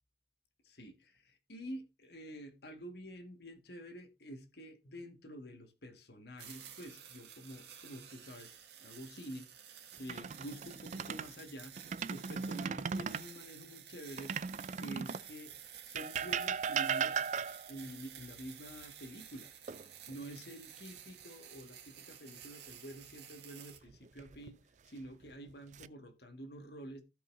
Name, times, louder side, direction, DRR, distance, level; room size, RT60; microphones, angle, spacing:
voice 1, 0.6-9.7 10.0-11.7 12.1-14.4 14.8-15.6 15.8-17.2 17.7-19.5 20.1-24.6 24.8-27.0, equal, 60° left, 1.6 m, -48 dB
sound 1, 6.4-23.8, right 9 dB, 65° right, 1.8 m, -53 dB
sound 2, 9.9-11.3 11.8-13.3 14.2-15.3 16.0-17.8 19.7-20.4 20.8-21.0 23.9-24.5 25.2-25.9, right 6 dB, 40° right, 0.4 m, -37 dB
15.5 x 5.4 x 2.6 m
head